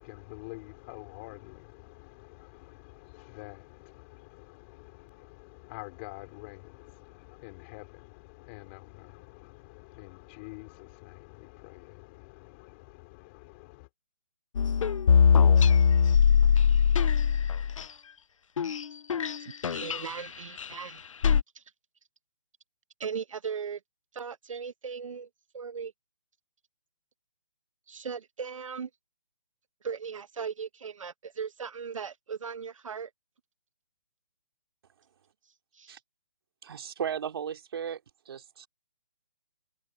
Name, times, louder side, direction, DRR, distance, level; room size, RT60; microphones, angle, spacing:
voice 1, 0.0-13.9, left 26 dB, 20° left, 4.7 m, -47 dB
sound 1, 14.6-17.8 18.6-18.8 19.1-19.4 19.6-20.0 20.6-20.7 21.2-21.4, left 6 dB, 65° left, 0.7 m, -21 dB
voice 2, 19.4-21.0 21.5-21.6 23.0-23.8 24.1-25.3 25.5-25.9 27.9-28.9 29.8-33.1 35.4-36.0, right 6 dB, 65° right, 1.2 m, -38 dB
voice 3, 36.6-38.0 38.3-38.7, right 8 dB, 45° right, 4.1 m, -35 dB
hypercardioid pair, 170°, 18 cm